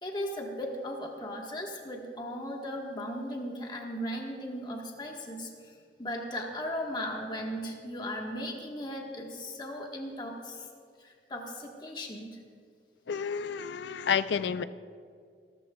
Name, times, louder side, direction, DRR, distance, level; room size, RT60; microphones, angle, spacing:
voice 1, 0.0-10.7 11.0-12.4, equal, 25° left, 1.4 m, -37 dB
voice 2, 13.1-14.6, left 7 dB, 80° left, 0.4 m, -30 dB
26.0 x 13.0 x 2.3 m
head